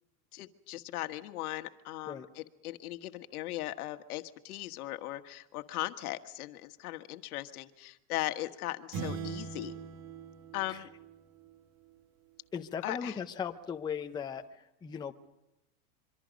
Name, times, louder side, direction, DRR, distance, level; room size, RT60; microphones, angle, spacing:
voice 1, 0.3-9.7 10.5-10.9 12.8-13.2, left 16 dB, 70° left, 9 dB, 1.6 m, -38 dB
sound 1, 8.9-11.6, right 6 dB, 50° right, 2.1 m, -41 dB
voice 2, 12.5-15.1, left 7 dB, 10° left, 5 dB, 0.7 m, -37 dB
26.0 x 24.5 x 5.3 m, 0.91 s
supercardioid pair, 145°, 45 cm